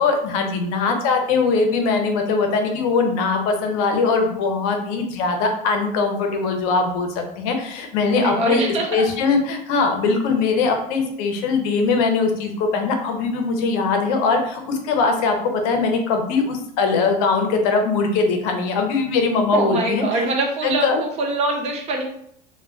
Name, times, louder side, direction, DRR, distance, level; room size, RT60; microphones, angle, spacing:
voice 1, 0.0-8.6 8.9-20.3 20.6-21.0, left 4 dB, 65° left, 4 dB, 0.6 m, -21 dB
voice 2, 8.1-9.1 19.5-22.0, right 2 dB, 30° right, 1 dB, 0.5 m, -23 dB
2.1 x 2.1 x 3.6 m, 0.71 s
supercardioid pair, 135°, 20 cm